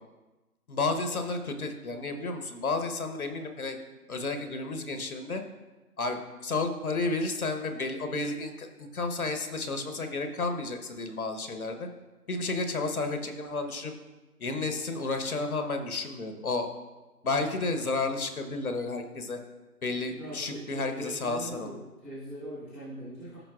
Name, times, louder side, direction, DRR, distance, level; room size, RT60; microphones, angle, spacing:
voice 1, 0.7-3.8 4.1-5.4 6.0-11.9 12.3-13.9 14.4-16.7 17.2-19.4 19.8-21.7, left 3 dB, 65° left, 6 dB, 1.1 m, -32 dB
voice 2, 20.2-23.4, equal, ahead, -14 dB, 0.8 m, -41 dB
14.0 x 5.3 x 2.4 m, 1.1 s
figure-of-eight pair, 165°, 47 cm